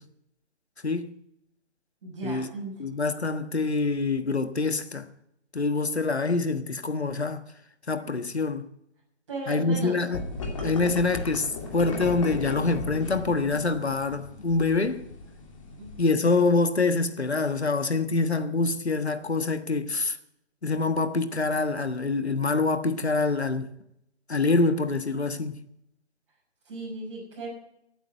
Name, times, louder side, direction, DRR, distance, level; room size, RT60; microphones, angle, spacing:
voice 1, 2.0-2.8 9.3-10.0 15.8-16.2 26.6-27.5, right 2 dB, 25° right, 6.4 m, -36 dB
voice 2, 2.8-5.1 5.5-7.4 7.9-8.7 9.5-10.2 10.6-15.0 16.0-20.2 20.6-23.7 24.3-25.5, left 3 dB, 70° left, 1.4 m, -25 dB
sound 1, 10.1-16.0, left 3 dB, 30° left, 2.5 m, -36 dB
15.5 x 9.1 x 8.1 m
figure-of-eight pair, 155°, 34 cm